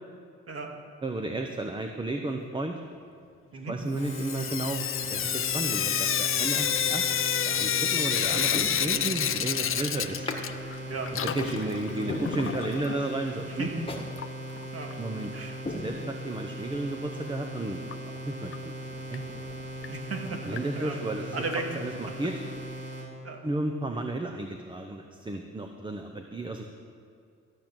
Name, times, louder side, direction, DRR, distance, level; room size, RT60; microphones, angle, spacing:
voice 1, 1.0-2.8 3.7-7.2 7.5-10.3 11.3-13.7 15.0-15.3 15.7-17.8 18.2-19.2 20.4-21.4 21.7-22.4 23.4-26.6, right 2 dB, 15° right, 4 dB, 0.8 m, -33 dB
Sink (filling or washing) / Drip, 4.0-10.8 11.0-13.0 14.2-14.3 14.6-14.7 14.9-15.0 17.9-18.0 18.5-18.6 19.1-19.2 19.8-19.9 20.6-20.7 21.5-21.6, left 9 dB, 45° left, 0.6 m, -29 dB
sound 1, 4.0-23.1, right 1 dB, 35° right, 3.5 m, -39 dB
sound 2, 7.6-7.9 8.5-9.4 10.3-10.5 10.9-11.0 11.5-11.6 12.1-13.0 13.3-13.4 13.9-14.1 14.5-14.6 15.1-15.3 15.7-16.5 16.9-17.0, left 2 dB, 20° left, 1.5 m, -38 dB
voice 2, 10.9-12.2 13.5-13.7 14.7-14.9 15.3-15.6 19.9-21.0 21.3-21.7 23.2-23.4, right 3 dB, 50° right, 2 dB, 2.0 m, -36 dB
14.5 x 6.2 x 8.9 m, 2.4 s
cardioid pair, 95°, 29 cm